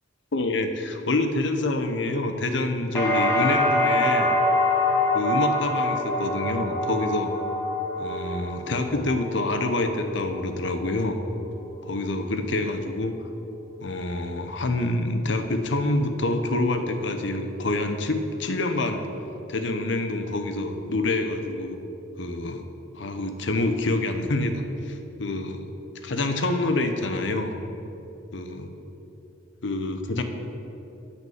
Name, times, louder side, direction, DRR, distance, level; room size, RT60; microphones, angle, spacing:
voice 1, 0.3-4.3 5.1-7.3 8.0-11.2 11.8-13.1 13.8-19.0 19.5-21.8 22.2-22.6 23.0-25.6 26.0-27.6 28.3-28.7 29.6-30.2, left 2 dB, 70° left, 7 dB, 0.8 m, -27 dB
sound 1, 2.9-10.9 11.2-11.9, left 1 dB, 10° left, 2.4 m, -25 dB
8.1 x 6.4 x 7.2 m, 3.0 s
head